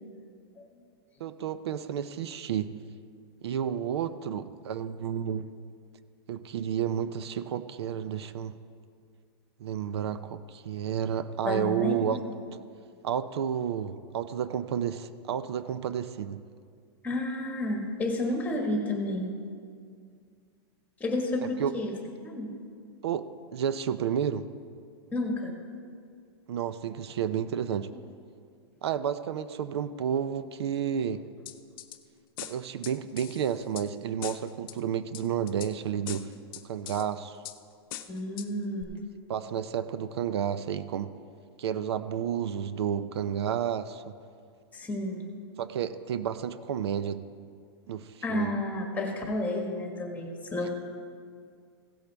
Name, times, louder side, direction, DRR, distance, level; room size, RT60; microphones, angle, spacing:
voice 1, 1.2-2.8 3.4-5.5 6.3-8.6 9.6-12.2 12.5-12.6 13.0-16.4 21.6-21.8 23.0-24.5 26.5-27.9 28.8-31.3 32.4-36.3 36.6-37.4 39.3-41.1 41.6-44.1 45.6-47.3 47.9-48.5, right 8 dB, 80° right, 13 dB, 0.5 m, -31 dB
voice 2, 11.4-11.9 17.0-19.3 21.0-21.9 22.2-22.5 25.1-25.5 38.1-38.9 44.7-45.2 48.2-50.7, left 1 dB, 10° left, 2 dB, 1.6 m, -31 dB
sound 1, 31.5-32.0 32.4-33.9 34.2-34.8 35.1-35.7 36.1-37.1 37.4-37.6 37.9-38.5 38.8-38.9, left 13 dB, 55° left, 0.7 m, -41 dB
16.5 x 8.1 x 3.4 m, 2.2 s
hypercardioid pair, 140°, 13 cm